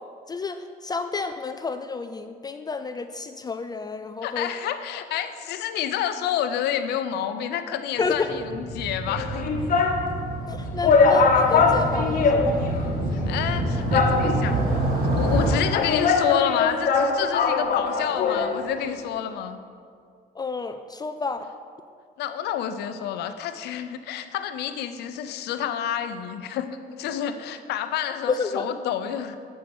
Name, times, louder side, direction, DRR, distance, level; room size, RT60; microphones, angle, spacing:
voice 1, 0.3-4.5 8.0-8.4 10.5-12.7 20.4-21.5 28.3-28.7, left 4 dB, 25° left, 9 dB, 0.4 m, -30 dB
voice 2, 4.2-9.5 13.3-19.6 22.2-29.4, left 9 dB, 80° left, 9 dB, 0.7 m, -29 dB
Motorcycle, 8.0-15.5, right 1 dB, 65° right, 2.0 m, -27 dB
sound 1, 9.1-10.0 10.5-10.6 10.8-12.9 13.2-13.3 13.9-14.6 15.4-18.6 18.8-18.9, left 4 dB, 55° left, 1.1 m, -21 dB
8.5 x 6.5 x 6.1 m, 2.2 s
cardioid pair, 110°, 17 cm